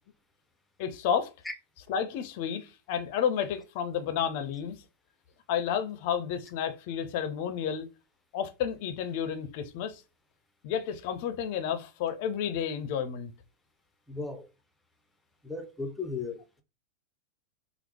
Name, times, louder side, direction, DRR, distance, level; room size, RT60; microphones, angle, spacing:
voice 1, 0.8-1.3 1.9-4.8 5.5-7.9 8.3-10.0 10.6-13.3, left 8 dB, 50° left, 0.5 m, -31 dB
voice 2, 14.1-14.5 15.4-16.6, left 3 dB, 5° left, 0.7 m, -36 dB
4.4 x 2.0 x 3.3 m
figure-of-eight pair, 90°, 0 cm